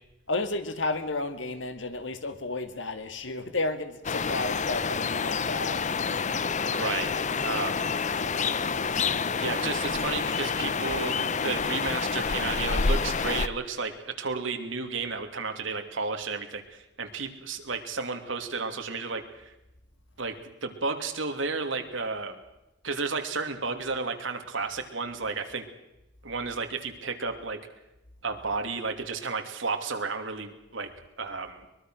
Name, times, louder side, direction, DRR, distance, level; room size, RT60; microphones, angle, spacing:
voice 1, 0.3-5.8, left 2 dB, 70° left, 9 dB, 2.1 m, -32 dB
sound 1, 4.0-13.5, left 5 dB, 40° left, 0.7 m, -28 dB
voice 2, 6.7-7.1 7.4-7.8 9.4-19.5 20.2-22.4 22.8-25.6 26.2-27.6 28.2-30.9 31.2-31.7, right 4 dB, 80° right, 6 dB, 2.8 m, -32 dB
23.5 x 22.0 x 6.4 m, 0.93 s
head